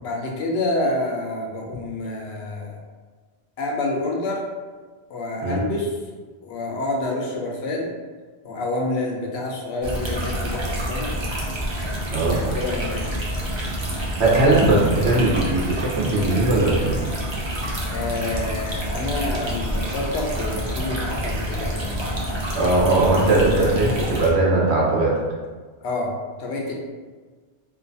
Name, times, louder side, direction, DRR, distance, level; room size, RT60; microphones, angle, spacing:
voice 1, 0.0-2.8 3.6-4.4 5.1-6.0 6.4-7.9 8.4-11.1 12.3-13.1 17.9-22.2 22.5-22.6 25.8-26.1 26.4-26.7, left 2 dB, 85° left, -1 dB, 0.9 m, -28 dB
sound 1, 9.8-24.3, equal, 50° right, 0.3 m, -28 dB
voice 2, 14.2-17.0 22.5-25.1, right 2 dB, 80° right, -4 dB, 1.0 m, -19 dB
2.6 x 2.2 x 2.6 m, 1.4 s
omnidirectional pair, 1.1 m